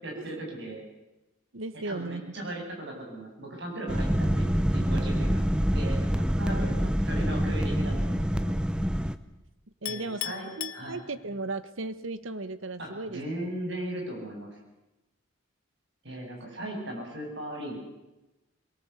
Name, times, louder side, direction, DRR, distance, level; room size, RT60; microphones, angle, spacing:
voice 1, 0.0-0.8 1.8-5.4 5.7-6.7 7.0-8.6 9.9-11.0 12.8-14.6 16.0-17.8, right 1 dB, 55° right, 0 dB, 8.0 m, -37 dB
voice 2, 1.5-2.2 6.4-6.9 9.8-10.3 10.6-13.2, right 2 dB, 75° right, 14 dB, 1.2 m, -36 dB
sound 1, 3.9-9.2, equal, 5° right, 0.8 m, -26 dB
Chink clink, 9.9-11.5, left 13 dB, 90° left, 1.1 m, -38 dB
23.0 x 18.5 x 8.3 m, 1.0 s
head